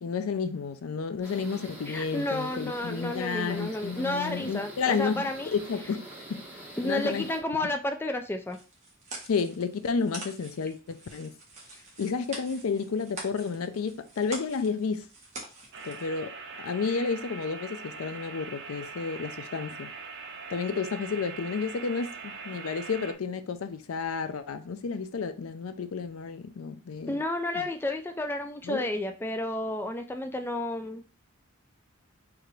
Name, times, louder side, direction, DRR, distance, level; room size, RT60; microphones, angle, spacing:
voice 1, 0.0-6.0 6.3-6.4 6.8-7.3 7.6-7.7 9.3-11.3 12.0-15.1 15.8-16.3 16.6-19.9 20.5-27.2 27.5-27.7 28.6-28.9, left 5 dB, 85° left, 0.5 m, -31 dB
sound 1, 1.2-7.4, right 1 dB, 10° right, 1.3 m, -45 dB
voice 2, 1.9-5.5 6.8-8.6 27.1-31.0, left 1 dB, 10° left, 0.4 m, -31 dB
sound 2, 8.5-16.1, right 2 dB, 35° right, 1.3 m, -45 dB
sound 3, 15.7-23.1, right 4 dB, 60° right, 0.6 m, -42 dB
4.7 x 2.5 x 3.1 m
head